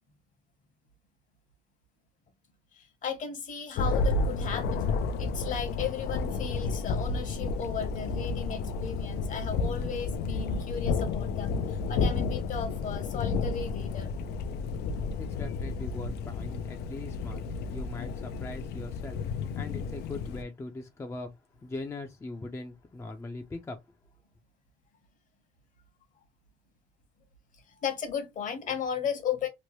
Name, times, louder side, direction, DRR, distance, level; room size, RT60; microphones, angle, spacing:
voice 1, 2.7-14.1 27.7-29.5, left 7 dB, 50° left, 1.0 m, -35 dB
Thunder, 3.8-20.4, left 4 dB, 75° left, 0.4 m, -31 dB
voice 2, 15.2-19.2 19.5-21.3 21.6-23.8, left 2 dB, 15° left, 0.5 m, -40 dB
3.0 x 2.1 x 2.9 m
cardioid pair, 110°, 17 cm